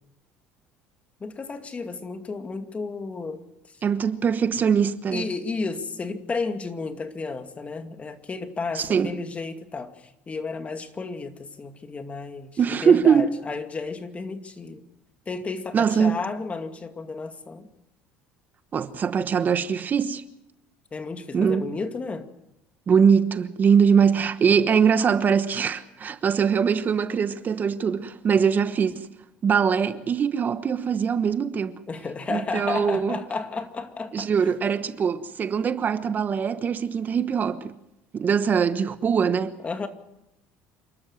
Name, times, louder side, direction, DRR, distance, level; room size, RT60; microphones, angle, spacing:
voice 1, 1.2-3.4 5.1-14.8 15.3-17.7 20.9-22.3 31.9-34.3 39.6-39.9, left 4 dB, 25° left, 2.3 m, -32 dB
voice 2, 3.8-5.3 8.7-9.1 12.6-13.4 15.7-16.2 18.7-20.2 21.3-21.7 22.9-29.1 29.4-31.8 32.3-33.2 34.1-37.7 38.1-39.5, right 6 dB, 40° right, 1.1 m, -22 dB
28.0 x 12.5 x 7.7 m
supercardioid pair, 90°, 5 cm